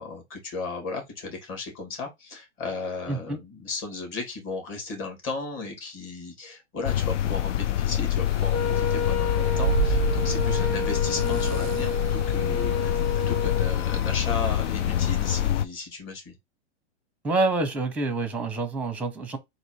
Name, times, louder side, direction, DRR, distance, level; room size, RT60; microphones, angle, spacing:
voice 1, 0.0-16.3, left 3 dB, 35° left, 2.4 m, -35 dB
voice 2, 3.1-3.4 17.2-19.4, right 3 dB, 5° right, 0.7 m, -27 dB
sound 1, 6.8-15.7, left 11 dB, 85° left, 0.5 m, -26 dB
sound 2, 8.3-15.5, right 12 dB, 45° right, 0.4 m, -33 dB
Wind instrument woodwind instrument, 8.5-13.7, left 4 dB, 55° left, 1.5 m, -30 dB
4.0 x 2.7 x 4.6 m
hypercardioid pair, 125°, 35 cm